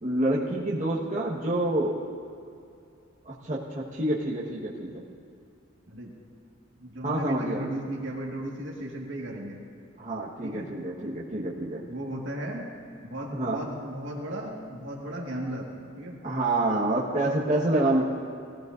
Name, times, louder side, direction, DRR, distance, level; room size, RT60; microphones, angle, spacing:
voice 1, 0.0-2.0 3.2-5.0 7.0-7.6 10.0-11.8 13.3-13.6 16.2-18.0, right 1 dB, 40° right, -6 dB, 1.4 m, -27 dB
voice 2, 6.8-9.6 10.4-10.7 11.9-12.7 13.0-15.7 16.0-16.2, right 1 dB, 65° right, -1 dB, 1.8 m, -35 dB
18.0 x 15.5 x 2.6 m, 2.5 s
head